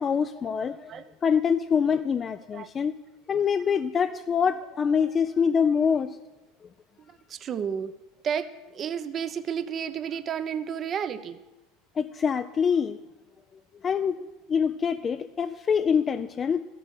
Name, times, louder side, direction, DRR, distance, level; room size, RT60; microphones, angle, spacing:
voice 1, 0.0-0.9 1.2-2.9 3.3-6.2 12.0-13.0 13.8-16.6, left 6 dB, 30° left, 9 dB, 0.4 m, -25 dB
voice 2, 7.3-7.9 8.2-11.4, right 8 dB, 40° right, 12 dB, 0.7 m, -31 dB
13.5 x 7.7 x 6.4 m, 1.0 s
hypercardioid pair, 80°, 0 cm